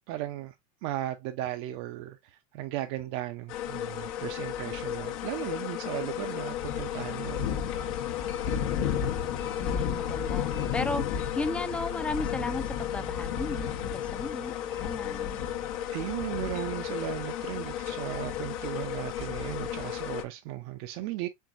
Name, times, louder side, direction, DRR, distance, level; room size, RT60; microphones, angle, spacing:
voice 1, 0.1-0.6 0.8-7.6 15.9-21.3, right 14 dB, 60° right, 0.5 m, -36 dB
sound 1, 3.5-20.2, left 9 dB, 70° left, 0.9 m, -33 dB
voice 2, 9.6-15.4, left 2 dB, 5° left, 0.3 m, -35 dB
4.5 x 3.6 x 2.4 m
supercardioid pair, 130°, 18 cm